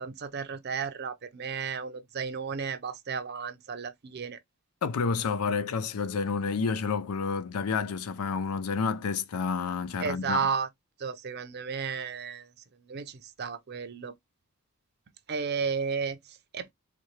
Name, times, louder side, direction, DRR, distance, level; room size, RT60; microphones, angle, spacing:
voice 1, 0.0-4.4 10.0-10.7 11.0-12.5 12.8-14.1 15.3-16.7, right 6 dB, 45° right, 0.5 m, -33 dB
voice 2, 4.8-10.4, left 5 dB, 85° left, 0.5 m, -29 dB
4.2 x 2.2 x 3.1 m
head